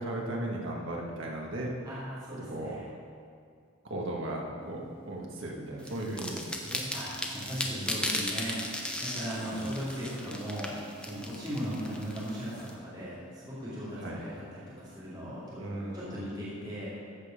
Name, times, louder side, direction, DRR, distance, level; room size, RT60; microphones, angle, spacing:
voice 1, 0.0-1.7 2.5-2.8 3.9-6.9 7.6-8.3 9.5-9.7 11.6-11.7 14.0-14.2 15.6-16.4, right 1 dB, 65° right, -1 dB, 1.6 m, -37 dB
voice 2, 1.8-2.8 5.8-5.9 6.9-8.6 9.0-10.7 11.0-15.6 15.9-16.9, equal, 20° right, -11 dB, 2.6 m, -38 dB
sound 1, 4.6-16.1, equal, 45° left, 2.4 m, -54 dB
sound 2, 5.9-12.7, left 1 dB, 5° left, 0.8 m, -36 dB
14.0 x 5.3 x 5.2 m, 2.2 s
head